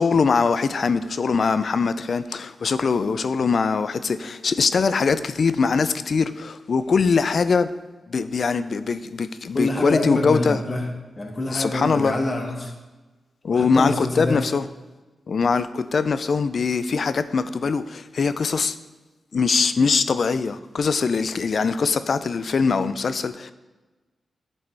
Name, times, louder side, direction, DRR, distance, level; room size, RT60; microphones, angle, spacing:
voice 1, 0.0-7.7 8.1-10.6 11.5-12.1 13.4-14.7 15.3-18.8 19.3-23.5, left 5 dB, 60° left, 0.3 m, -22 dB
voice 2, 9.5-10.9 11.2-12.7 13.5-14.4, left 2 dB, 35° left, 1.2 m, -26 dB
10.5 x 4.1 x 3.4 m
wide cardioid pair, 90°, 0 cm